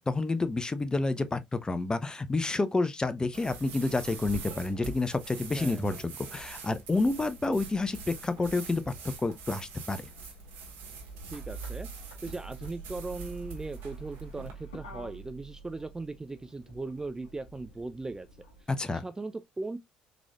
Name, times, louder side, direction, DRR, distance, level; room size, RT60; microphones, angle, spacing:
voice 1, 0.0-8.9 9.2-10.0 18.7-19.0, left 3 dB, 20° left, 0.6 m, -29 dB
sound 1, 3.3-14.5, right 4 dB, 70° right, 1.3 m, -44 dB
voice 2, 5.5-5.8 11.3-11.9 12.2-18.3 19.0-19.8, right 3 dB, 15° right, 0.4 m, -38 dB
Motor vehicle (road), 7.9-18.6, right 5 dB, 90° left, 1.1 m, -47 dB
3.9 x 3.2 x 2.3 m
hypercardioid pair, 60°, 4 cm